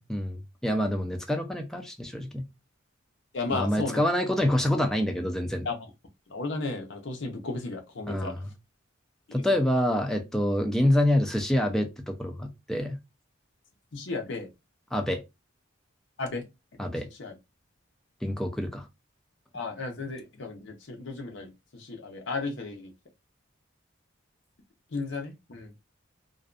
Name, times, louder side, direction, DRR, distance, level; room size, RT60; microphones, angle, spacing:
voice 1, 0.1-2.5 3.5-5.7 8.1-8.4 9.3-13.0 14.9-15.2 16.8-17.1 18.2-18.9, left 1 dB, ahead, 0.3 m, -26 dB
voice 2, 3.3-4.0 5.6-5.9 6.3-8.3 9.3-9.6 13.9-14.5 16.2-16.4 16.7-16.8 17.2-17.4 19.5-22.9 24.9-25.7, left 3 dB, 60° left, 0.6 m, -34 dB
2.5 x 2.1 x 2.4 m
head